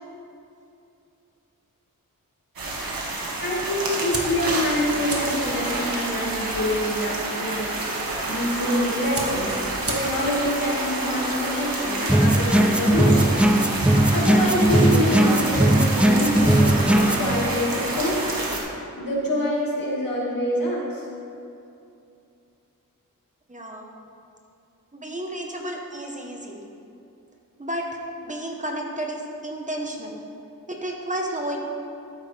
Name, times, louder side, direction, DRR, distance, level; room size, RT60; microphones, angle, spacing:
sound 1, 2.6-18.6, right 2 dB, 85° right, 1.6 m, -28 dB
voice 1, 3.4-7.7 8.3-13.4 14.1-18.4 18.7-21.0, left 1 dB, 75° left, -4 dB, 2.4 m, -26 dB
sound 2, 4.1-12.6, right 2 dB, 45° right, 1.6 m, -39 dB
sound 3, 12.1-17.3, right 1 dB, 5° right, 0.3 m, -19 dB
voice 2, 23.5-23.9 24.9-26.7 27.6-27.9 28.2-30.2 30.7-31.6, right 1 dB, 20° right, 1 dB, 1.3 m, -31 dB
12.5 x 9.7 x 3.5 m, 2.7 s
wide cardioid pair, 90°, 34 cm